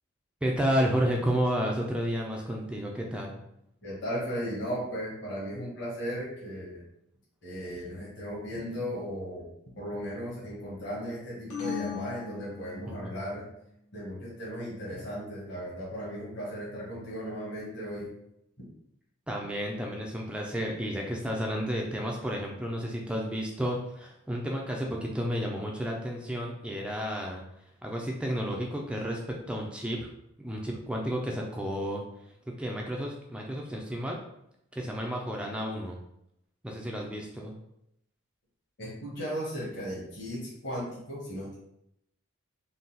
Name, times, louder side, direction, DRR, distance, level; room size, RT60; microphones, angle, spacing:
voice 1, 0.4-3.4 8.5-8.7 14.9-15.1 19.3-27.4 27.8-30.1 30.4-32.0 32.6-34.2 34.7-36.0 36.6-37.5, equal, 5° right, -1 dB, 0.3 m, -31 dB
voice 2, 3.8-6.8 7.4-9.4 9.8-13.4 13.9-18.1 38.8-41.6, equal, 50° left, -6 dB, 1.3 m, -36 dB
sound 1, 11.5-13.2, left 6 dB, 80° left, 1.1 m, -37 dB
3.9 x 2.2 x 3.9 m, 0.78 s
head